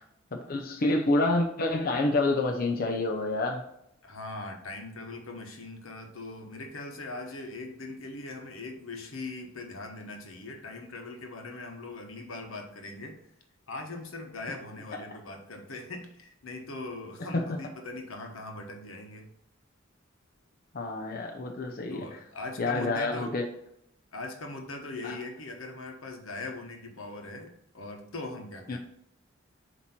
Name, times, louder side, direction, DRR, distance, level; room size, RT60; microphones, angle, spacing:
voice 1, 0.3-3.6 14.9-15.0 17.3-17.6 20.7-22.1 22.6-23.5 25.0-25.2 28.7-28.8, left 2 dB, 45° left, 2 dB, 0.7 m, -28 dB
voice 2, 4.0-13.2 13.7-19.3 21.9-23.3 24.1-28.8, left 2 dB, 85° left, 3 dB, 1.2 m, -40 dB
7.8 x 3.0 x 4.3 m, 0.76 s
head